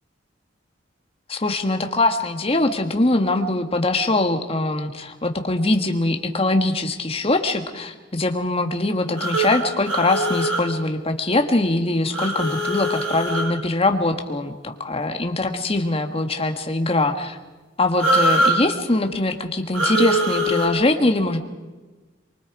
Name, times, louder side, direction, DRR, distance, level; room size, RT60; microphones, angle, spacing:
voice 1, 1.3-17.4 17.8-21.4, left 2 dB, 30° left, 5 dB, 1.7 m, -22 dB
sound 1, 9.2-10.6 12.1-13.5 18.0-18.6 19.7-20.7, right 1 dB, 90° right, 4.2 m, -22 dB
24.5 x 23.5 x 4.9 m, 1.2 s
head